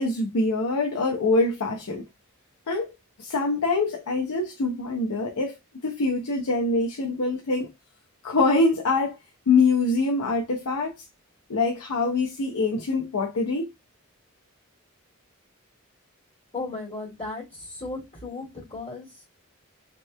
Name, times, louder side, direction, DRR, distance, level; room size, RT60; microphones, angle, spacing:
voice 1, 0.0-2.0 2.7-2.9 3.2-5.6 5.8-7.7 8.2-9.2 9.5-11.0 11.5-13.7, left 3 dB, 85° left, 0.6 m, -24 dB
voice 2, 16.5-19.2, left 3 dB, 25° left, 1.8 m, -36 dB
3.2 x 2.9 x 2.2 m
head